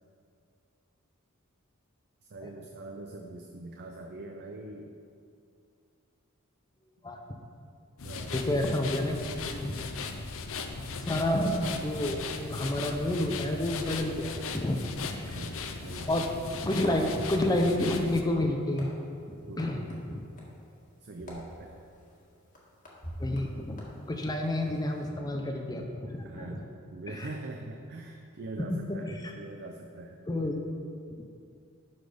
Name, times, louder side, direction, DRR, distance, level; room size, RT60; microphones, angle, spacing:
voice 1, 2.3-5.0 8.0-8.3 15.3-16.2 19.5-19.7 21.0-21.7 26.2-30.3, right 2 dB, 50° right, 3 dB, 0.5 m, -43 dB
voice 2, 7.0-7.4 8.3-9.8 11.1-12.2 12.5-15.4 16.1-16.3 16.6-19.0 19.6-19.8 20.1-20.2 23.2-26.6 27.1-27.3 28.6-29.3 30.3-30.7, left 1 dB, 20° left, 2 dB, 0.6 m, -30 dB
sound 1, 8.0-18.2, left 4 dB, 65° left, 0.6 m, -38 dB
sound 2, 16.5-25.1, equal, 40° left, 1.7 m, -47 dB
11.5 x 4.1 x 5.0 m, 2.4 s
head